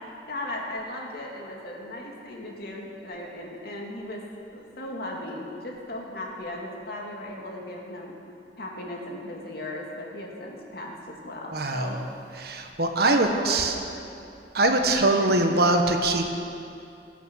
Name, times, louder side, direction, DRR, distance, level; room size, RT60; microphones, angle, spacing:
voice 1, 0.3-4.2 4.5-8.1 8.6-12.0 13.0-13.9 15.1-15.3, left 1 dB, 60° left, -1 dB, 2.4 m, -37 dB
voice 2, 11.5-12.0 12.4-13.7 14.5-16.2, right 2 dB, 60° right, 4 dB, 1.3 m, -22 dB
20.0 x 8.5 x 6.4 m, 2.6 s
head